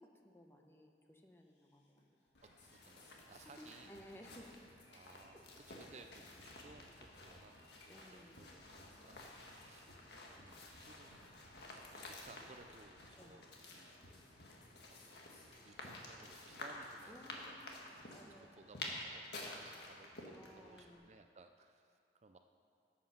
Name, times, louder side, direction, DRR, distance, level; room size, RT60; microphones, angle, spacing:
voice 1, 0.0-2.4 3.4-4.6 5.3-5.4 5.7-5.8 7.9-8.5 13.2-13.4 17.1-17.8 18.1-18.6 20.3-21.1, equal, 15° left, 2 dB, 0.9 m, -59 dB
sound 1, 1.6-2.0 2.3-18.3, left 1 dB, 85° left, 2.5 m, -65 dB
sound 2, 2.4-21.0, left 2 dB, 65° left, 1.6 m, -52 dB
voice 2, 2.4-3.9 4.9-7.5 7.8-11.3 11.7-14.0 15.6-22.4, right 3 dB, 40° right, 7 dB, 0.4 m, -61 dB
14.0 x 7.7 x 5.8 m, 2.3 s
head